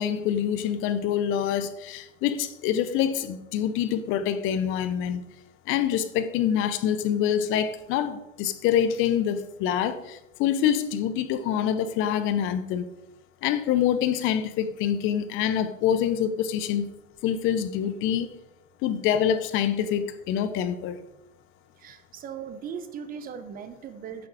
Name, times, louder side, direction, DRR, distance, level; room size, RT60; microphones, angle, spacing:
voice 1, 0.0-5.2 5.7-12.9 13.4-16.9 17.2-18.3 18.8-21.0, left 9 dB, 30° left, 0.8 m, -26 dB
voice 2, 21.8-24.3, right 7 dB, 20° right, 0.8 m, -38 dB
8.8 x 7.0 x 4.8 m
hypercardioid pair, 105°, 41 cm